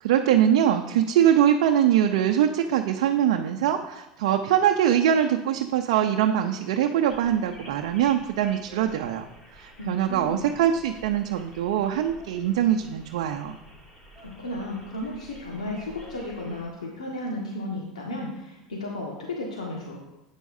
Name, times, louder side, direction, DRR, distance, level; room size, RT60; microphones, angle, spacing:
voice 1, 0.0-9.3 9.5-13.6, right 10 dB, 70° right, 3 dB, 0.6 m, -23 dB
sound 1, 7.1-16.7, equal, 25° left, 3.9 m, -49 dB
voice 2, 9.8-10.4 14.2-20.0, left 1 dB, 90° left, -2 dB, 1.6 m, -34 dB
11.5 x 9.1 x 2.7 m, 0.92 s
hypercardioid pair, 80°, 3 cm